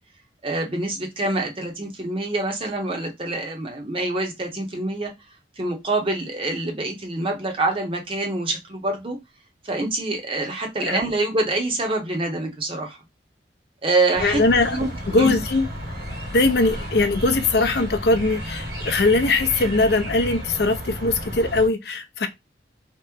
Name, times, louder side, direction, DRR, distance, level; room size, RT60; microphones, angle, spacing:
voice 1, 0.4-5.1 5.6-9.2 9.6-13.0 13.8-14.4 14.7-15.4, right 2 dB, 30° right, 0.7 m, -26 dB
sound 1, 14.1-21.7, equal, 65° right, 1.5 m, -32 dB
voice 2, 14.2-14.8 15.1-15.7 16.3-22.3, left 3 dB, 65° left, 0.5 m, -21 dB
2.9 x 2.1 x 3.4 m
head